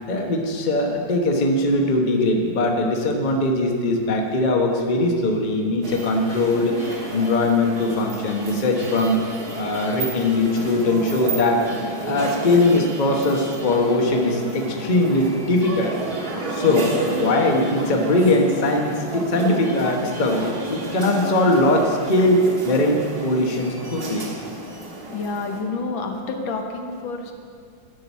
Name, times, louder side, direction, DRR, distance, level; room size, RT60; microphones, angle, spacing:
voice 1, 0.1-9.2 9.6-11.6 12.0-15.9 16.5-24.3, left 2 dB, 30° left, 1 dB, 0.9 m, -21 dB
sound 1, 5.8-25.6, right 2 dB, 55° right, 1.9 m, -31 dB
voice 2, 25.1-27.3, left 3 dB, 80° left, 3 dB, 1.8 m, -28 dB
11.5 x 5.9 x 8.3 m, 2.3 s
omnidirectional pair, 2.1 m